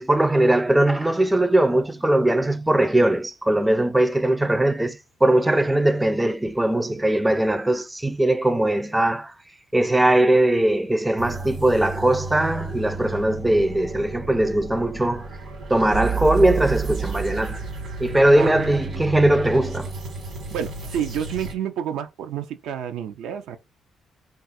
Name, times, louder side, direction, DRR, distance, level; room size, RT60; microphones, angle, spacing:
voice 1, 0.0-9.3 9.7-15.3 15.7-17.6 18.0-19.9, right 1 dB, 10° right, 0.3 m, -20 dB
sound 1, 11.2-21.5, right 5 dB, 65° right, 1.2 m, -32 dB
voice 2, 18.4-18.7 20.5-23.6, right 9 dB, 85° right, 0.4 m, -29 dB
2.4 x 2.4 x 4.0 m
cardioid pair, 90°, 0 cm